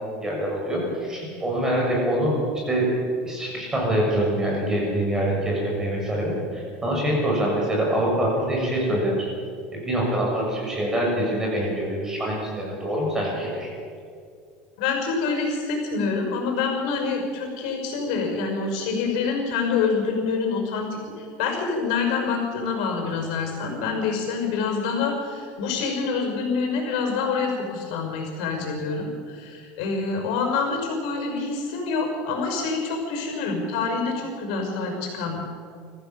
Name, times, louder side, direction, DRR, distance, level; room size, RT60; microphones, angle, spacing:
voice 1, 0.0-2.3 2.7-2.9 3.2-9.3 9.7-13.7, right 1 dB, 10° right, -2 dB, 6.7 m, -25 dB
voice 2, 14.8-35.5, left 4 dB, 75° left, 3 dB, 5.9 m, -26 dB
24.5 x 15.0 x 7.2 m, 2.2 s
cardioid pair, 155°, 4 cm